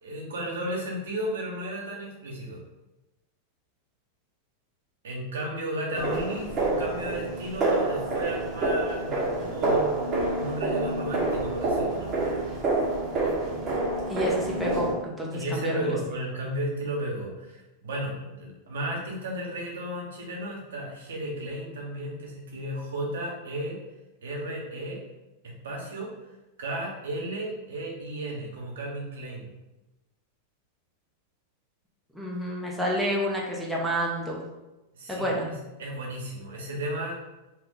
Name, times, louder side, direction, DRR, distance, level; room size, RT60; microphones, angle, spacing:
voice 1, 0.0-2.6 5.0-10.0 10.3-12.4 15.3-23.7 24.2-25.0 25.4-26.1 26.6-29.5 34.9-37.1, right 1 dB, 85° right, -1 dB, 1.0 m, -34 dB
sound 1, 5.9-14.9, right 2 dB, 30° right, 0.9 m, -27 dB
voice 2, 14.1-16.0 32.1-34.4 35.1-35.5, equal, ahead, -4 dB, 0.8 m, -29 dB
2.8 x 2.4 x 3.9 m, 1.0 s
hypercardioid pair, 120°, 0 cm